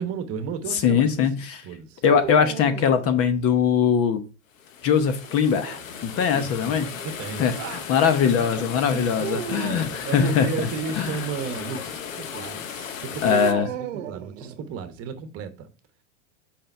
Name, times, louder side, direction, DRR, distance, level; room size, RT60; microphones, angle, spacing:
voice 1, 0.0-1.3 1.6-2.0 6.3-7.9 8.5-9.1 9.3-13.5 13.8-15.7, right 6 dB, 35° right, 1.1 m, -34 dB
voice 2, 0.7-1.6 2.0-4.2 4.8-6.9 7.4-7.5 7.9-10.7 10.9-11.2 13.2-13.7, left 7 dB, 35° left, 0.8 m, -21 dB
sound 1, 2.0-3.6 5.2-6.4 9.2-10.0 13.2-14.9, right 11 dB, 80° right, 0.9 m, -35 dB
sound 2, 4.5-13.5, left 7 dB, 90° left, 1.0 m, -36 dB
5.5 x 5.1 x 4.4 m
hypercardioid pair, 120°, 39 cm